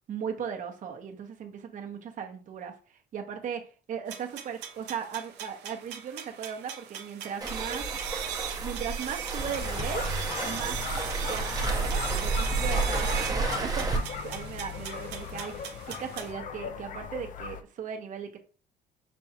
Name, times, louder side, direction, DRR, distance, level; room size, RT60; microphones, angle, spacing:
voice 1, 0.1-7.8 8.6-10.1 10.4-10.9 11.2-18.4, right 7 dB, 50° right, 3 dB, 1.0 m, -37 dB
sound 1, 4.1-16.3, right 9 dB, 85° right, 0.8 m, -39 dB
Waves surf, 7.4-14.0, right 3 dB, 20° right, 0.8 m, -31 dB
sound 2, 9.4-17.6, left 7 dB, 50° left, 0.6 m, -38 dB
5.4 x 3.4 x 2.9 m, 0.38 s
cardioid pair, 110°, 17 cm